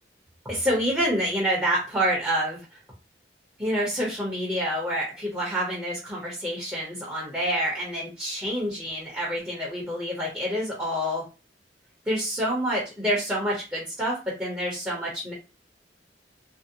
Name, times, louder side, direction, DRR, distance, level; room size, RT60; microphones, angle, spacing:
voice 1, 0.4-2.8 3.6-11.2 12.1-15.3, equal, 10° right, -4 dB, 0.7 m, -27 dB
2.6 x 2.0 x 2.6 m, 0.31 s
head